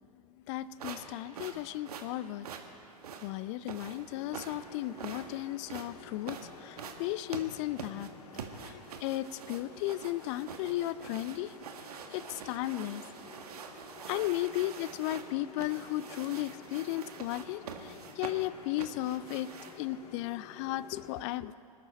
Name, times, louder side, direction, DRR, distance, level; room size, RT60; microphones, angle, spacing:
voice 1, 0.5-2.5 3.2-8.1 8.6-11.5 12.1-13.0 14.1-19.5 19.8-21.5, left 15 dB, 45° left, 17 dB, 0.6 m, -35 dB
sound 1, 0.8-19.9, right 6 dB, 70° right, 1.7 m, -45 dB
sound 2, 4.1-21.2, left 5 dB, 70° left, 2.0 m, -52 dB
25.0 x 13.0 x 4.3 m, 2.5 s
figure-of-eight pair, 95°, 20 cm